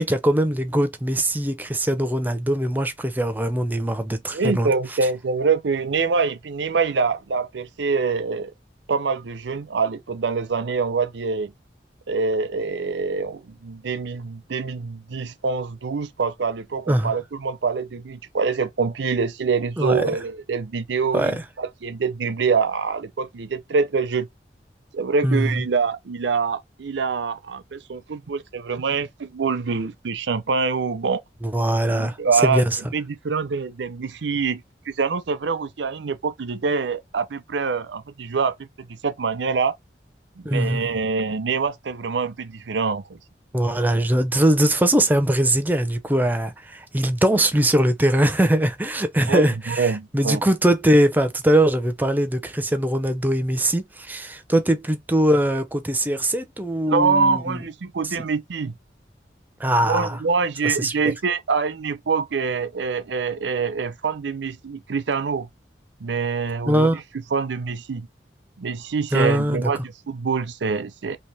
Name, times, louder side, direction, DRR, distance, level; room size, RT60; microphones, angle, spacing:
voice 1, 0.0-4.7 16.9-17.1 19.8-20.0 21.1-21.3 25.2-25.6 31.4-32.8 40.4-40.9 43.5-57.6 59.6-60.2 60.6-60.9 66.7-67.0 69.1-69.7, right 1 dB, 10° right, 0.5 m, -21 dB
voice 2, 4.3-8.5 8.9-11.5 12.1-24.3 24.9-31.2 31.9-32.6 32.9-39.7 40.4-43.2 49.3-50.4 56.9-58.7 59.8-65.5 66.0-67.0 67.3-68.1 68.6-71.2, right 5 dB, 85° right, 0.6 m, -25 dB
2.9 x 2.9 x 3.3 m
head